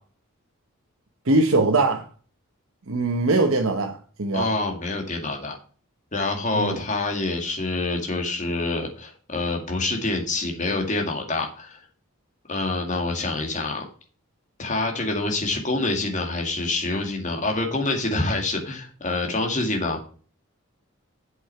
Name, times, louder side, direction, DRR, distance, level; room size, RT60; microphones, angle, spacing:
voice 1, 1.3-2.1 2.9-4.5 6.5-6.8, right 2 dB, 65° right, 1.0 m, -21 dB
voice 2, 4.3-5.6 6.1-11.8 12.5-13.8 14.6-20.0, left 2 dB, 35° left, 2.1 m, -26 dB
7.9 x 6.1 x 5.6 m
head